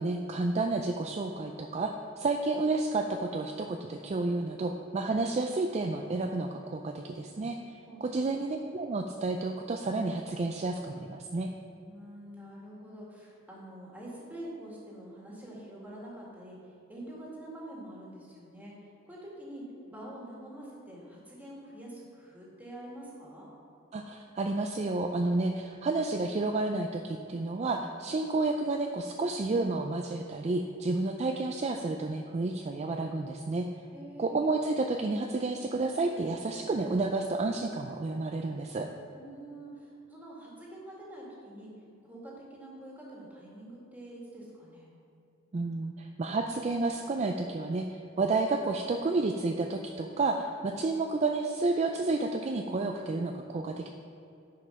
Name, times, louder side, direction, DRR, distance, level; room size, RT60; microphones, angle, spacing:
voice 1, 0.0-7.6 8.0-11.5 23.9-33.7 34.2-38.9 45.5-47.9 48.2-53.9, right 3 dB, 35° right, 4 dB, 0.4 m, -30 dB
voice 2, 7.9-8.4 11.9-23.5 28.0-28.3 33.9-34.6 39.1-41.7 42.0-44.9, right 1 dB, 10° right, -5 dB, 2.0 m, -46 dB
9.6 x 5.2 x 5.7 m, 2.8 s
head